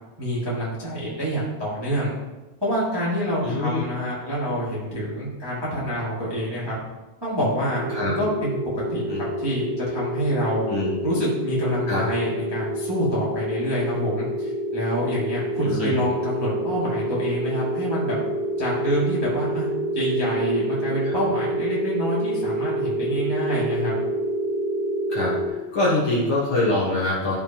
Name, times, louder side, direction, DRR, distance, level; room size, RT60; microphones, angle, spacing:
voice 1, 0.2-2.1 2.6-6.8 7.2-10.6 11.0-18.2 18.6-19.7 19.9-24.0, equal, 30° right, -7 dB, 0.4 m, -27 dB
voice 2, 3.4-3.8 7.9-8.1 9.1-9.2 10.7-10.9 11.9-12.0 15.6-16.0 21.0-21.2 25.1-27.3, left 2 dB, 75° left, -6 dB, 1.2 m, -24 dB
sound 1, 7.8-25.5, right 1 dB, 75° right, 3.0 m, -28 dB
13.0 x 5.4 x 2.9 m, 1.1 s
omnidirectional pair, 4.4 m